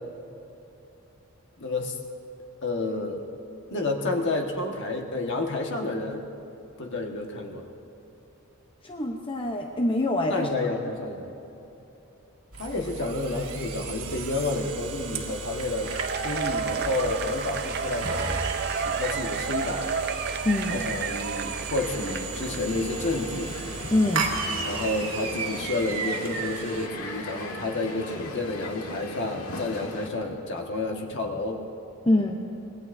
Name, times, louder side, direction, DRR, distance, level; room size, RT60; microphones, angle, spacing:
voice 1, 1.6-2.0 2.6-3.2 3.7-6.2 6.8-7.7 10.3-11.3 12.6-16.0 16.2-18.4 18.7-19.9 20.7-23.6 24.6-31.6, left 2 dB, 55° left, 2 dB, 1.5 m, -30 dB
voice 2, 8.8-10.5 20.4-20.8 23.9-24.3 32.0-32.4, left 1 dB, 25° left, 1 dB, 0.8 m, -24 dB
sound 1, 12.5-26.9, right 4 dB, 85° right, 2.0 m, -35 dB
Cheering / Applause / Crowd, 15.8-22.6, right 5 dB, 50° right, 0.7 m, -31 dB
Crowd, 21.8-30.1, left 2 dB, 85° left, 1.6 m, -38 dB
25.5 x 20.5 x 2.7 m, 2.9 s
head